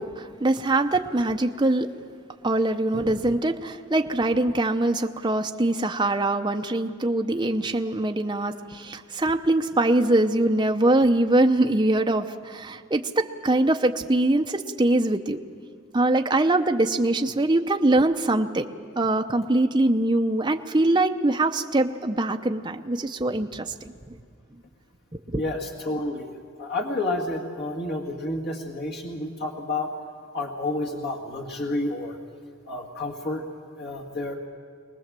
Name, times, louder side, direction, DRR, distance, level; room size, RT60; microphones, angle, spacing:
voice 1, 0.0-1.9 2.4-15.4 15.9-18.6 19.0-24.1 25.3-25.4, right 2 dB, 20° right, 5 dB, 0.7 m, -23 dB
voice 2, 25.4-26.3 26.6-29.9 30.3-32.2 32.7-33.4 33.8-34.4, left 2 dB, 55° left, -1 dB, 1.9 m, -30 dB
23.0 x 19.0 x 7.5 m, 2.1 s
head